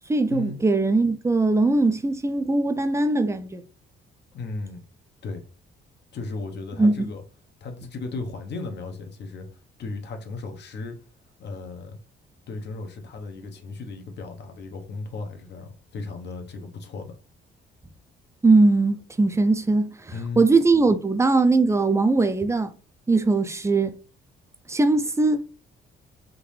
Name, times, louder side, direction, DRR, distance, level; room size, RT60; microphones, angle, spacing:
voice 1, 0.1-3.6 6.8-7.1 18.4-22.7 23.1-23.9 24.7-25.4, right 3 dB, 15° right, 0.5 m, -20 dB
voice 2, 4.3-4.8 5.2-5.4 6.1-7.2 7.6-9.5 9.8-11.0 11.4-12.0 12.5-17.2 20.1-20.5, left 3 dB, 60° left, 0.9 m, -35 dB
3.8 x 2.6 x 3.2 m
cardioid pair, 90°, 20 cm